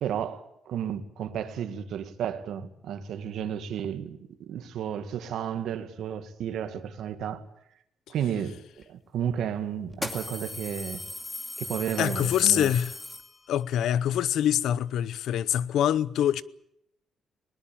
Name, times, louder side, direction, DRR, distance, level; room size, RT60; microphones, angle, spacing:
voice 1, 0.0-7.4 8.1-8.6 8.9-11.0 11.6-12.7, right 9 dB, 70° right, 2.1 m, -32 dB
sound 1, 8.8-8.9 9.9-13.7, left 1 dB, 10° left, 2.4 m, -38 dB
voice 2, 12.0-12.9 13.5-16.4, left 10 dB, 70° left, 0.8 m, -25 dB
21.0 x 19.5 x 8.8 m
cardioid pair, 155°, 0 cm